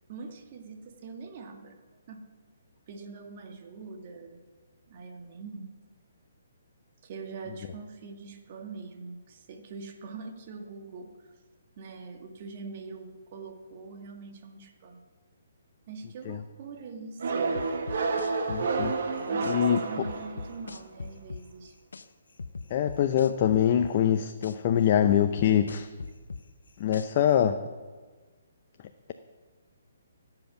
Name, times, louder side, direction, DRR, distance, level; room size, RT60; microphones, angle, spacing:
voice 1, 0.1-1.8 2.1-2.2 2.9-4.3 4.9-5.7 7.0-11.1 11.8-15.0 15.9-17.5 19.3-21.7, right 4 dB, 45° right, 4 dB, 1.8 m, -43 dB
sound 1, 17.2-20.7, right 4 dB, 60° right, 1.6 m, -30 dB
sound 2, 17.6-19.6 20.1-22.1 22.4-24.6 25.1-27.3, left 4 dB, 80° left, 0.7 m, -40 dB
voice 2, 18.5-18.9 19.5-19.8 22.7-25.9 26.8-27.6, left 9 dB, 40° left, 8 dB, 0.6 m, -24 dB
16.0 x 7.9 x 5.9 m, 1.4 s
hypercardioid pair, 145°, 0 cm